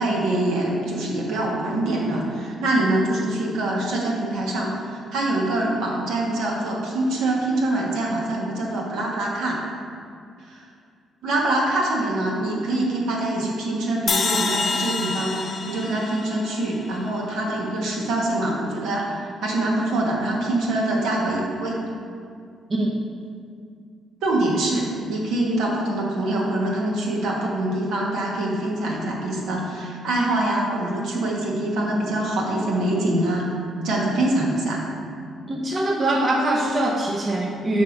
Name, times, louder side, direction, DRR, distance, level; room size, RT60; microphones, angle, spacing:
voice 1, 0.0-9.6 10.5-10.6 11.2-21.8 24.2-33.5 33.8-34.8, right 1 dB, 85° right, -3 dB, 1.2 m, -24 dB
sound 1, 14.1-17.3, left 4 dB, 45° left, 0.6 m, -27 dB
voice 2, 22.7-23.0 35.5-37.8, right 1 dB, 35° right, -1 dB, 0.7 m, -23 dB
5.8 x 3.4 x 5.2 m, 2.2 s
cardioid pair, 90°, 0 cm